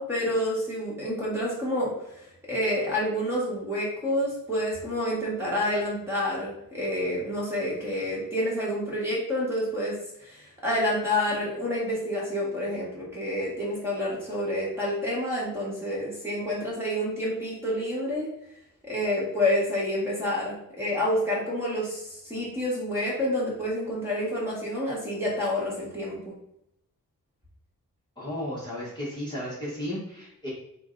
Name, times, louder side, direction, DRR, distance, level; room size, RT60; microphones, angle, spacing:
voice 1, 0.0-18.3 18.8-26.2, left 1 dB, 10° right, -6 dB, 1.3 m, -28 dB
voice 2, 28.2-30.5, left 1 dB, 15° left, -8 dB, 1.0 m, -34 dB
4.3 x 2.2 x 3.7 m, 0.79 s
wide cardioid pair, 160°, 32 cm